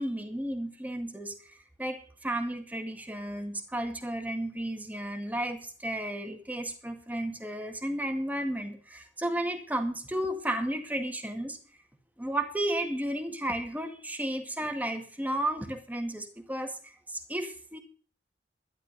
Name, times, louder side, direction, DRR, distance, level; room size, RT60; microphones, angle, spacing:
voice 1, 0.0-1.5 1.8-11.6 12.2-17.8, right 1 dB, 10° right, 6 dB, 2.0 m, -33 dB
12.0 x 11.5 x 5.3 m, 0.44 s
head